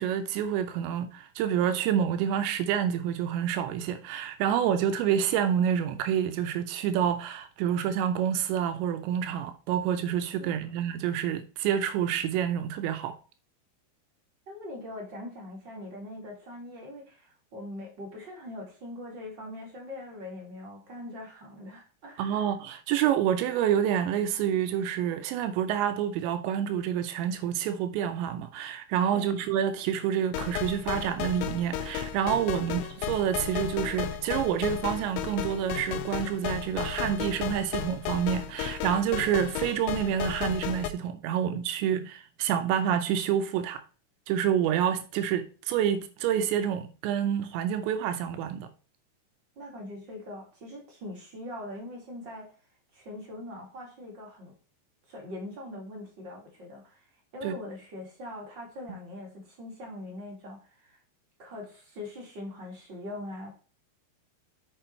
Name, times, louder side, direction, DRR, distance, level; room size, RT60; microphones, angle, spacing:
voice 1, 0.0-13.2 22.2-43.8 44.3-48.7 57.4-57.6, right 9 dB, 80° right, 2.9 m, -28 dB
voice 2, 10.4-10.7 14.5-22.5 29.1-29.3 32.6-32.8 49.6-52.5 52.9-54.5 55.1-57.1 57.3-61.0 61.4-63.5, left 1 dB, 35° right, 1.9 m, -42 dB
sound 1, 30.3-40.9, left 9 dB, 85° left, 3.0 m, -34 dB
6.8 x 6.5 x 4.4 m
omnidirectional pair, 5.3 m